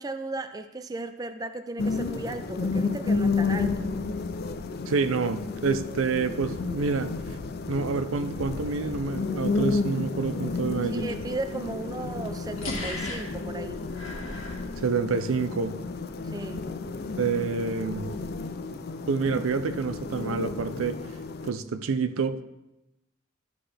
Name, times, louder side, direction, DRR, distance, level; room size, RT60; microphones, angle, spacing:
voice 1, 0.0-3.9 10.9-13.8 16.2-16.6, right 2 dB, 20° right, 9 dB, 0.3 m, -35 dB
sound 1, 1.8-21.5, left 4 dB, 50° left, 0.4 m, -31 dB
voice 2, 4.9-7.1 7.7-11.1 14.8-15.7 17.2-18.1 19.1-21.0 21.4-22.4, right 4 dB, 85° right, 11 dB, 0.5 m, -28 dB
sound 2, 11.3-15.5, left 2 dB, 80° left, 1.9 m, -39 dB
12.5 x 5.7 x 3.4 m, 0.94 s
head